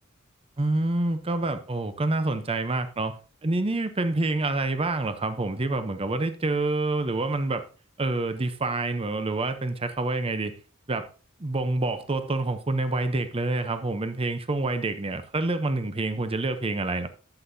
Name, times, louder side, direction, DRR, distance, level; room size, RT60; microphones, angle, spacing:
voice 1, 0.6-3.2 3.4-7.6 8.0-10.6 10.9-11.1 11.4-17.1, right 2 dB, 25° right, 0.7 m, -27 dB
11.5 x 7.8 x 2.7 m
head